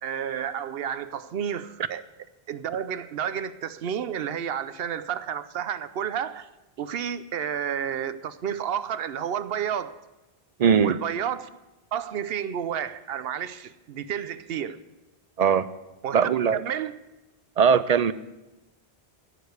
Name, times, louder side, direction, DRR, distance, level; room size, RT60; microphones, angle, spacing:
voice 1, 0.0-2.1 2.5-6.5 6.8-10.0 10.8-11.5 11.9-14.8 16.0-16.9, right 8 dB, 75° right, 0.9 m, -31 dB
voice 2, 10.6-11.0 15.4-15.7 16.1-16.6 17.6-18.1, right 7 dB, 50° right, 0.5 m, -20 dB
15.0 x 6.8 x 8.0 m
omnidirectional pair, 1.0 m